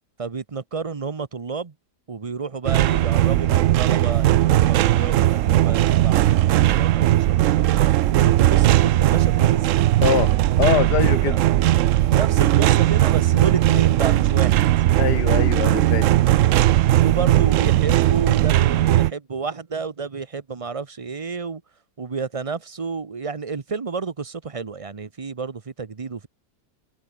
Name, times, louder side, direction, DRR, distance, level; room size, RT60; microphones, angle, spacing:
voice 1, 0.2-1.7 2.1-7.9 8.2-9.7 11.2-11.4 12.1-14.7 17.0-21.6 22.0-26.3, right 5 dB, 30° right, 0.6 m, -30 dB
sound 1, 2.7-19.1, right 14 dB, 70° right, 0.8 m, -18 dB
voice 2, 10.0-11.4 15.0-16.1, left 12 dB, 85° left, 1.5 m, -23 dB
omnidirectional pair, 1.7 m